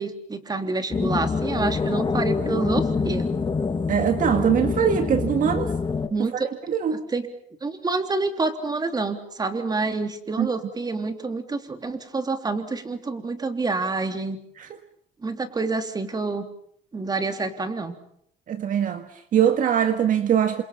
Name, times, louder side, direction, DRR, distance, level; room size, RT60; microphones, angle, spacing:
voice 1, 0.0-3.3 6.1-6.3 6.9-7.3 7.6-14.4 15.2-16.4 16.9-18.0, right 3 dB, 25° right, 6 dB, 3.3 m, -28 dB
sound 1, 0.9-6.1, left 4 dB, 25° left, 2.0 m, -25 dB
voice 2, 3.9-5.7 6.2-7.0 10.4-10.5 14.6-14.8 18.5-20.6, right 8 dB, 50° right, 8 dB, 1.6 m, -22 dB
28.5 x 26.5 x 5.9 m, 0.67 s
cardioid pair, 110°, 17 cm